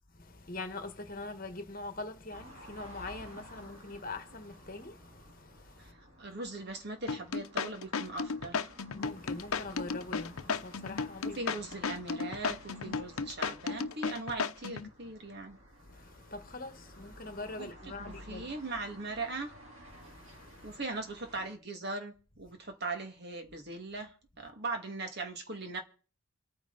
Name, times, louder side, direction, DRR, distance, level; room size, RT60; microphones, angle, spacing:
voice 1, 0.1-5.9 8.9-11.4 15.9-18.5 19.9-20.8, left 2 dB, 40° left, 1.6 m, -43 dB
sound 1, 2.3-21.5, equal, 70° right, 3.7 m, -54 dB
voice 2, 6.2-8.7 11.2-15.6 17.6-19.5 20.6-25.8, right 3 dB, 50° right, 2.2 m, -40 dB
sound 2, 7.1-14.9, left 5 dB, 80° left, 0.8 m, -34 dB
27.0 x 9.4 x 4.1 m
head